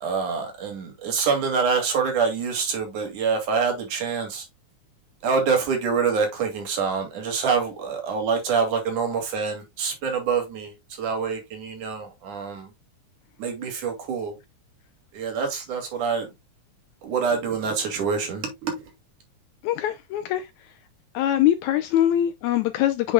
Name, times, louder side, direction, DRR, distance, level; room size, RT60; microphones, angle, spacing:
voice 1, 0.0-4.5 5.2-12.7 13.4-14.3 15.1-16.3 17.0-18.8, right 5 dB, 75° right, 3.6 m, -26 dB
voice 2, 19.6-20.4 21.2-23.1, left 12 dB, 80° left, 1.9 m, -22 dB
7.8 x 6.1 x 2.2 m
omnidirectional pair, 3.5 m